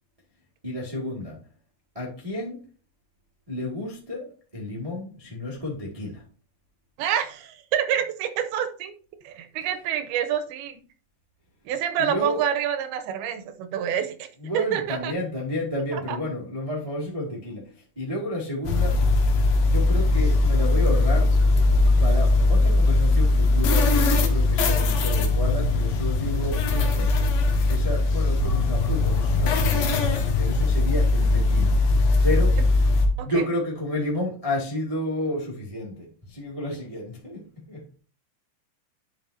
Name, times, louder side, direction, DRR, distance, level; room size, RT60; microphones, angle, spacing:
voice 1, 0.6-1.4 1.9-2.6 3.5-6.2 12.0-12.4 14.4-19.1 19.6-21.3 22.0-27.3 27.7-32.6 33.2-37.9, left 1 dB, 30° right, 0.6 m, -31 dB
voice 2, 7.0-8.9 9.2-10.8 11.7-14.3 14.5-15.1 15.9-16.2 33.2-33.3, right 9 dB, 80° right, 2.6 m, -27 dB
sound 1, 18.6-33.1, left 3 dB, 70° left, 2.8 m, -20 dB
11.0 x 5.3 x 2.8 m
omnidirectional pair, 4.7 m